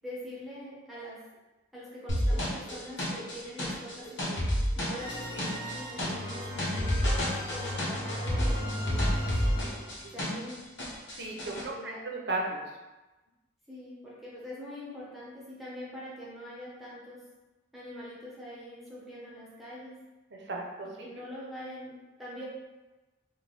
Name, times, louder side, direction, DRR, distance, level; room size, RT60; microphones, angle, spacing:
voice 1, 0.0-1.2 1.7-4.5 4.7-7.0 7.5-9.8 10.1-10.6 11.4-12.0 13.7-17.3 17.7-20.0 21.0-22.5, equal, ahead, -8 dB, 0.8 m, -43 dB
sound 1, 2.1-10.5 10.8-11.6, equal, 75° left, 0.9 m, -30 dB
sound 2, 5.0-10.2, left 1 dB, 40° left, 0.7 m, -36 dB
voice 2, 11.2-12.6 20.3-20.9, right 2 dB, 60° right, 0 dB, 0.6 m, -35 dB
3.3 x 2.1 x 3.8 m, 1.1 s
head